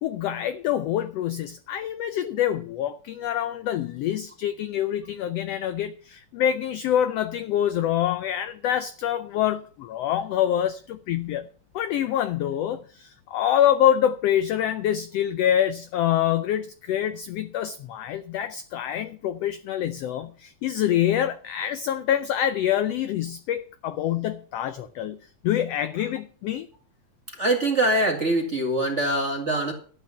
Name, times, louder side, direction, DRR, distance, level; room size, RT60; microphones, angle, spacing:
voice 1, 0.0-11.5 11.7-25.2 25.4-26.7, left 10 dB, 85° left, 1.4 m, -26 dB
voice 2, 27.4-29.7, right 1 dB, 25° right, 1.8 m, -23 dB
12.0 x 8.9 x 5.7 m
omnidirectional pair, 3.6 m